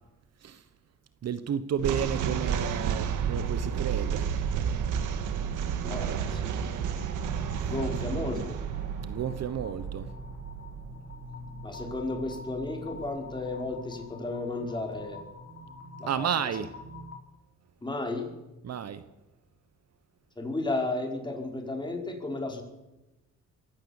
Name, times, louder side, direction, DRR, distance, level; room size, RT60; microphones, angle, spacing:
voice 1, 1.2-4.3 9.1-10.1 16.1-16.7 18.6-19.0, right 8 dB, 55° right, 13 dB, 1.2 m, -31 dB
sound 1, 1.8-13.1, right 7 dB, 85° right, 1.9 m, -32 dB
voice 2, 5.8-6.6 7.6-8.6 11.6-15.2 16.0-16.6 17.8-18.3 20.4-22.6, left 2 dB, 15° left, 2 dB, 4.9 m, -33 dB
sound 2, 6.7-17.2, left 2 dB, 45° left, 4.2 m, -45 dB
22.5 x 16.0 x 7.3 m, 1.0 s
cardioid pair, 90°, 30 cm